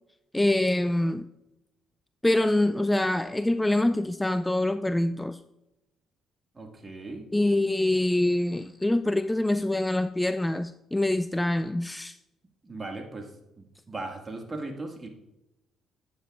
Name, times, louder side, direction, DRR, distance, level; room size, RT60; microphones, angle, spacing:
voice 1, 0.3-1.3 2.2-5.4 7.3-12.2, left 1 dB, 10° left, 12 dB, 0.4 m, -25 dB
voice 2, 6.6-7.2 12.6-13.3 13.6-15.1, right 2 dB, 30° right, 3 dB, 2.0 m, -38 dB
9.4 x 9.3 x 2.5 m, 0.93 s
supercardioid pair, 60°, 0 cm